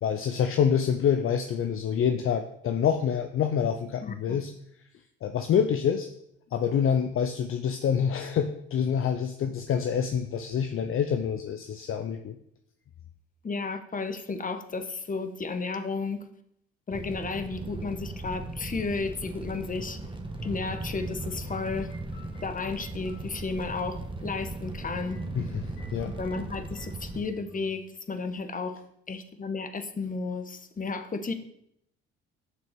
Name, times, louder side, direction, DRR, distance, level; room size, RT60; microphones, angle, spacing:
voice 1, 0.0-4.5 5.2-6.1 6.5-12.4 25.3-25.6 25.9-26.1, left 8 dB, 45° left, 7 dB, 0.8 m, -26 dB
voice 2, 4.0-4.4 13.4-16.2 16.9-20.0 20.4-21.9 22.4-25.2 26.1-28.8 29.1-31.3, left 4 dB, 30° left, 9 dB, 1.4 m, -33 dB
Fire, 16.9-27.2, right 2 dB, 15° right, 1.7 m, -38 dB
sound 1, 20.4-24.7 25.1-27.7, left 1 dB, 85° left, 2.5 m, -48 dB
7.8 x 6.1 x 6.1 m, 0.75 s
hypercardioid pair, 55°, 29 cm